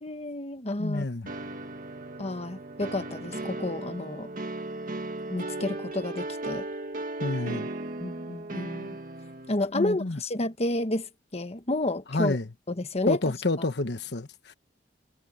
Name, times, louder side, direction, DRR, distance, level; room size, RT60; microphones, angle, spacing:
voice 1, 0.0-1.0 2.2-4.3 5.3-6.7 8.0-8.9 9.5-12.4 12.7-13.2 13.6-13.7, left 2 dB, 35° left, 1.3 m, -30 dB
voice 2, 0.8-1.3 7.2-7.7 9.7-10.2 12.1-12.5 13.0-14.5, left 2 dB, 70° left, 1.3 m, -29 dB
sound 1, 1.3-9.5, right 2 dB, 50° right, 1.8 m, -36 dB
head